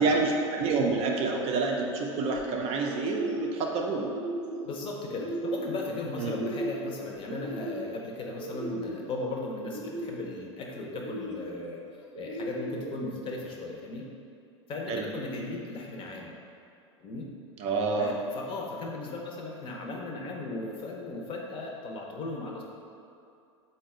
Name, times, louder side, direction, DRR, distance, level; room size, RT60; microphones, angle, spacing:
voice 1, 0.0-4.1 6.2-6.4 14.9-15.1 17.6-18.2, right 3 dB, 40° right, 1 dB, 0.4 m, -28 dB
sound 1, 1.0-1.5 1.9-2.6 2.9-3.6 3.9-4.7 5.1-5.8 6.1-6.9 7.3-8.0 8.4-9.1 9.6-10.4 10.9-11.6 12.1-12.9, right 1 dB, 90° right, 0.6 m, -37 dB
voice 2, 4.6-11.8 12.2-14.0 14.7-16.4 17.0-17.3 18.0-22.6, left 2 dB, 35° left, -1 dB, 0.6 m, -37 dB
3.9 x 2.2 x 3.6 m, 2.5 s
hypercardioid pair, 95°, 15 cm